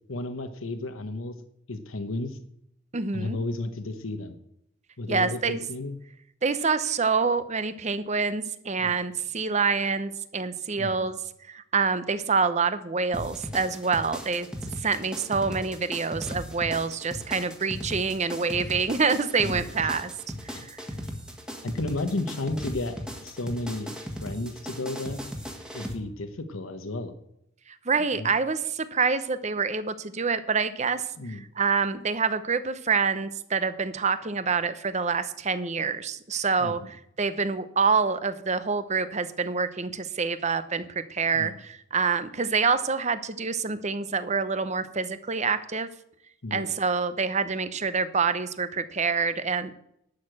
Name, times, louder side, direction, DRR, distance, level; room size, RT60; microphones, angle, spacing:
voice 1, 0.1-1.3 1.7-2.4 3.1-4.4 5.0-6.0 8.8-8.9 10.8-11.1 17.7-17.8 19.4-19.9 20.5-20.6 21.6-23.0 23.2-24.0 24.2-25.2 25.7-27.1 28.2-28.3 31.2-31.5 36.6-36.9 41.3-41.6 46.4-46.7, left 2 dB, 80° left, 8 dB, 1.0 m, -33 dB
voice 2, 2.9-3.4 5.1-5.6 6.4-11.2 11.5-14.5 14.8-20.1 20.4-20.8 27.9-31.0 31.3-45.9 46.5-49.7, right 5 dB, 35° right, 12 dB, 0.8 m, -26 dB
sound 1, 13.1-25.9, equal, 5° right, 1.6 m, -37 dB
11.5 x 6.6 x 7.7 m, 0.76 s
head